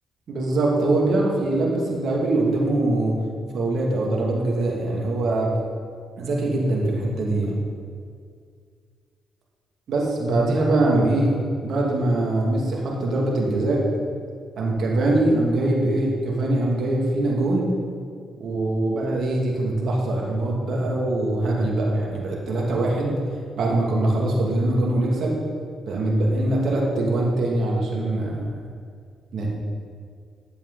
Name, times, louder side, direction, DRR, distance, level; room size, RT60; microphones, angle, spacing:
voice 1, 0.3-3.2 3.5-5.5 6.2-7.6 9.9-11.3 11.6-13.8 14.6-17.7 18.4-23.2 23.6-25.4 25.9-28.5 29.3-29.5, right 2 dB, 65° right, -2 dB, 2.1 m, -22 dB
10.5 x 7.5 x 3.9 m, 2.1 s
supercardioid pair, 55°, 0 cm